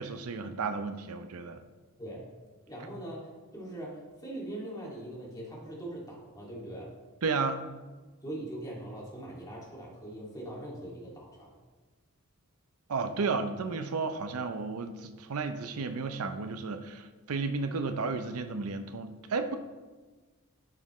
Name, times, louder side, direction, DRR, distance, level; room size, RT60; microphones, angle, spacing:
voice 1, 0.0-1.6 7.2-7.6 12.9-19.6, right 4 dB, 75° right, 9 dB, 0.5 m, -33 dB
voice 2, 2.7-6.9 8.2-11.5, right 1 dB, 20° left, -4 dB, 2.2 m, -41 dB
10.5 x 6.4 x 3.1 m, 1.3 s
head